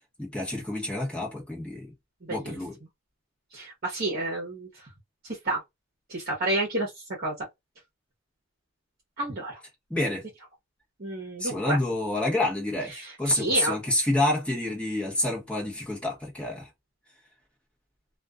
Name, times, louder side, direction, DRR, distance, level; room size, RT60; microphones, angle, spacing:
voice 1, 0.2-1.9 2.3-2.8 9.9-10.2 11.4-16.7, left 1 dB, 5° left, 1.0 m, -28 dB
voice 2, 2.2-2.6 3.5-4.8 5.4-5.6 6.1-6.9 7.2-7.4 9.2-9.6 11.0-11.8 13.0-13.8, right 2 dB, 45° right, 0.9 m, -30 dB
2.4 x 2.3 x 2.3 m
head